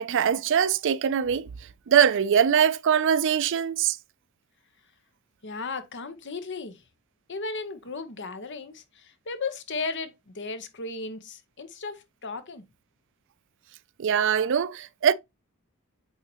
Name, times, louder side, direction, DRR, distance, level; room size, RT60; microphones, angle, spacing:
voice 1, 0.0-1.5 1.9-4.0 14.0-15.1, right 8 dB, 60° right, 0.4 m, -22 dB
voice 2, 5.4-6.8 7.3-12.6, left 4 dB, 60° left, 1.0 m, -35 dB
8.1 x 4.1 x 2.9 m
head